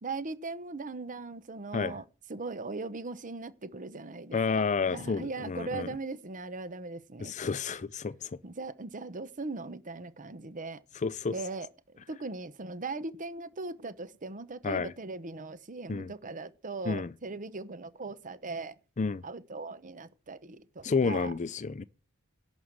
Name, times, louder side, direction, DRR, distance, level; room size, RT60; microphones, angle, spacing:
voice 1, 0.0-2.0 2.3-7.3 8.4-10.8 11.3-18.7 19.2-21.3, right 3 dB, 35° right, 0.9 m, -39 dB
voice 2, 4.3-5.9 7.2-8.3 11.0-11.3 14.6-14.9 15.9-16.1 16.9-17.1 19.0-19.2 20.8-21.8, left 4 dB, 35° left, 0.5 m, -30 dB
11.5 x 6.2 x 7.4 m
head